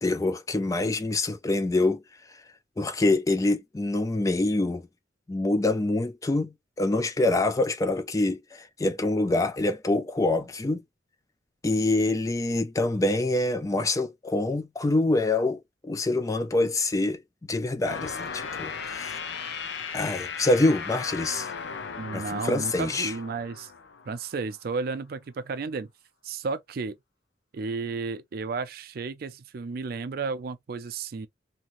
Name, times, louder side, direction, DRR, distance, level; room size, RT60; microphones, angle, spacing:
voice 1, 0.0-2.0 2.8-4.9 5.3-10.8 11.6-17.2 17.5-18.7 19.0-19.2 19.9-21.5 22.1-23.1, left 2 dB, 20° left, 0.3 m, -25 dB
sound 1, 17.8-24.4, left 5 dB, 70° left, 0.5 m, -36 dB
voice 2, 22.0-23.7 24.1-25.9 26.2-27.0 27.5-31.3, right 4 dB, 55° right, 0.4 m, -33 dB
3.0 x 2.7 x 2.5 m
head